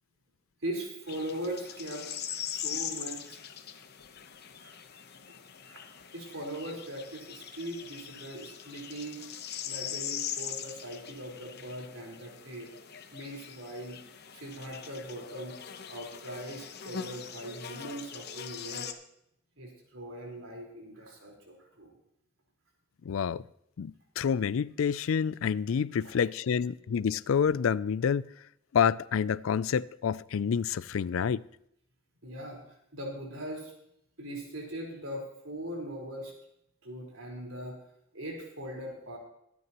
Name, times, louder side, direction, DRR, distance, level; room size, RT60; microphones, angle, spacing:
voice 1, 0.6-2.1 2.5-3.4 4.6-4.7 5.6-5.8 6.1-9.2 9.6-12.7 13.1-14.0 14.3-15.6 15.9-18.9 19.6-21.9 26.0-26.1 32.2-32.6 32.9-33.7 34.2-36.3 36.8-37.8 38.1-39.2, right 1 dB, 80° right, 4.3 m, -40 dB
sound 1, 1.1-18.9, left 8 dB, 50° left, 1.0 m, -41 dB
voice 2, 23.0-23.4 23.8-28.3 28.7-31.4, left 7 dB, 75° left, 0.4 m, -28 dB
24.5 x 9.6 x 3.0 m
head